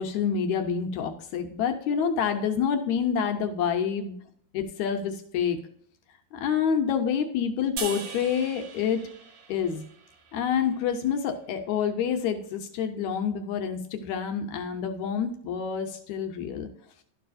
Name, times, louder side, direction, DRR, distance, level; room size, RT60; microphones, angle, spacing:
voice 1, 0.0-4.1 4.5-5.6 6.3-9.1 9.5-9.8 10.3-16.7, left 7 dB, 80° left, 5 dB, 2.0 m, -27 dB
sound 1, 7.8-11.0, right 6 dB, 60° right, 1.2 m, -40 dB
12.0 x 4.7 x 2.5 m, 0.63 s
omnidirectional pair, 3.3 m